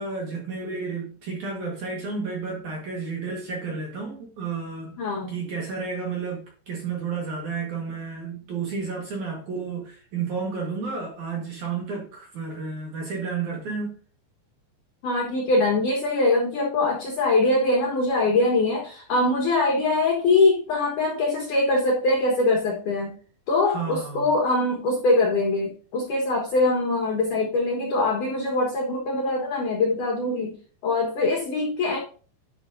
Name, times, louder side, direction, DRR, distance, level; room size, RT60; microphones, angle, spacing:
voice 1, 0.0-5.0 5.3-13.9 23.7-24.3, right 5 dB, 65° right, -1 dB, 1.9 m, -31 dB
voice 2, 5.0-5.3 15.0-23.1 23.5-30.5 30.8-32.0, left 2 dB, 70° left, -1 dB, 2.0 m, -23 dB
11.0 x 6.0 x 2.6 m, 0.40 s
omnidirectional pair, 5.7 m